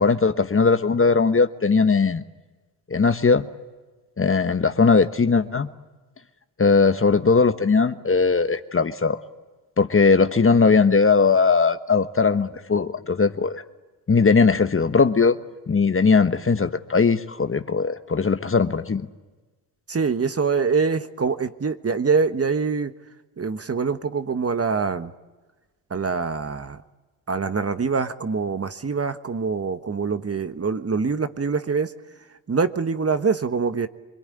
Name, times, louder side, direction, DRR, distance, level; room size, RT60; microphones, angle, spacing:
voice 1, 0.0-2.2 2.9-3.5 4.2-5.7 6.6-9.2 9.8-13.6 14.1-15.4 15.7-19.1, left 4 dB, 30° left, 10 dB, 1.3 m, -19 dB
voice 2, 19.9-22.9 23.4-25.1 25.9-26.8 27.3-31.9 32.5-33.9, right 5 dB, 30° right, 10 dB, 1.4 m, -24 dB
26.5 x 21.5 x 9.9 m, 1.2 s
supercardioid pair, 60°, 45 cm